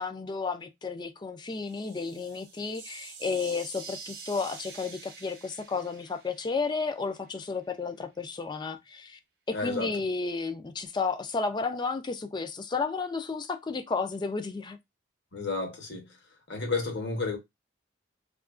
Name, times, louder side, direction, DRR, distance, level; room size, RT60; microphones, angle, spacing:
voice 1, 0.0-9.2 9.5-14.8, left 4 dB, 20° left, 0.3 m, -32 dB
sound 1, 1.4-7.3, right 5 dB, 60° right, 0.8 m, -47 dB
voice 2, 9.5-9.9 15.3-16.1 16.5-17.4, left 3 dB, 60° left, 0.9 m, -31 dB
2.8 x 2.4 x 2.3 m
head